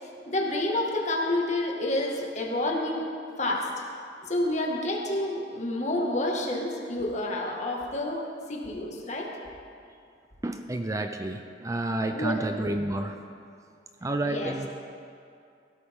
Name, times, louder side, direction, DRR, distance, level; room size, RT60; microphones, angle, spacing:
voice 1, 0.3-3.0 3.4-3.7 4.2-8.2 8.5-9.3 12.1-12.5 14.2-14.5, left 1 dB, 40° left, -1 dB, 1.8 m, -29 dB
voice 2, 10.4-13.2 14.0-14.7, right 1 dB, 20° right, 6 dB, 0.5 m, -30 dB
17.0 x 13.0 x 3.7 m, 2.4 s
head